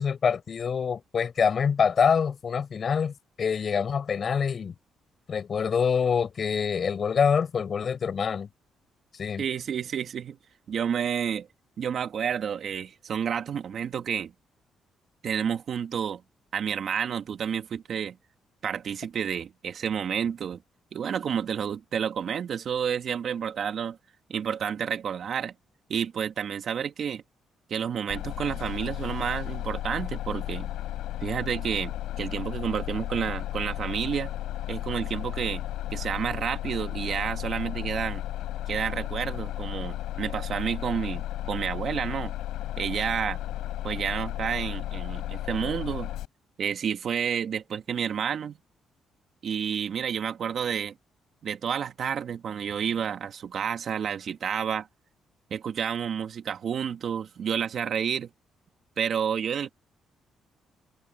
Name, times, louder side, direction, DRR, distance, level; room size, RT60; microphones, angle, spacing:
voice 1, 0.0-4.7 5.3-8.5 9.2-9.4, left 6 dB, 50° left, 5.5 m, -25 dB
voice 2, 9.4-10.4 10.7-11.5 11.8-14.3 15.2-16.2 16.5-18.2 18.6-20.6 20.9-24.0 24.3-25.5 25.9-27.2 27.7-30.7 31.2-34.3 34.7-35.6 35.9-38.2 38.7-42.3 42.8-43.4 43.8-46.1 46.6-48.6 49.4-50.9 51.4-54.9 55.5-58.3 59.0-59.7, right 8 dB, 60° right, 2.2 m, -30 dB
Bus, 28.1-46.3, left 13 dB, 85° left, 5.0 m, -34 dB
cardioid pair, 90°, 0 cm